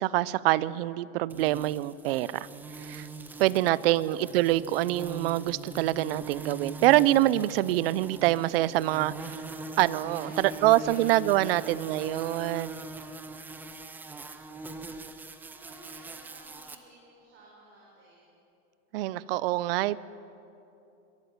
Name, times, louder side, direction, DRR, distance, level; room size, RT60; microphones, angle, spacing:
voice 1, 0.0-2.5 2.8-3.1 3.4-9.4 9.8-12.8 18.9-20.0, right 16 dB, 50° right, 19 dB, 0.6 m, -25 dB
sound 1, 1.3-16.8, right 3 dB, 5° right, 0.4 m, -42 dB
voice 2, 3.6-4.0 10.0-12.1 15.4-18.3, right 2 dB, 30° right, -4 dB, 5.2 m, -54 dB
22.5 x 12.5 x 9.5 m, 2.9 s
supercardioid pair, 150°, 38 cm